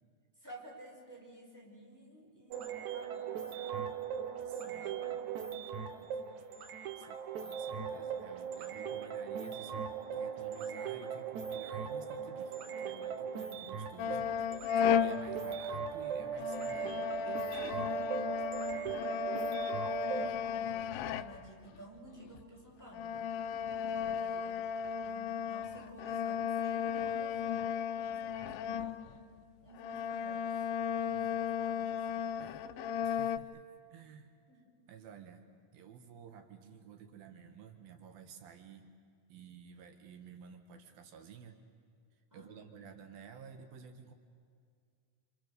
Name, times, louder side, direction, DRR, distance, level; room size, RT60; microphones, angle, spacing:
voice 1, 0.4-2.6 2.9-4.0 4.7-6.7 18.7-19.7 20.1-23.3 24.0-24.7 25.0-29.2 29.6-30.7 30.9-32.5 34.5-34.6 42.3-42.6, right 1 dB, 5° right, -2 dB, 5.4 m, -54 dB
sound 1, 2.5-20.3, right 7 dB, 65° right, 2.4 m, -39 dB
voice 2, 4.5-5.2 7.0-18.1 31.1-31.3 32.4-32.8 33.0-33.6 33.9-34.4 34.9-35.4 35.7-38.9 39.3-41.6 42.3-44.1, right 7 dB, 85° right, 6 dB, 3.4 m, -53 dB
sound 2, 14.0-16.0 16.3-21.7 22.3-22.4 22.9-29.4 29.7-33.4, left 8 dB, 90° left, 2.6 m, -35 dB
29.0 x 27.5 x 6.8 m, 2.2 s
omnidirectional pair, 4.1 m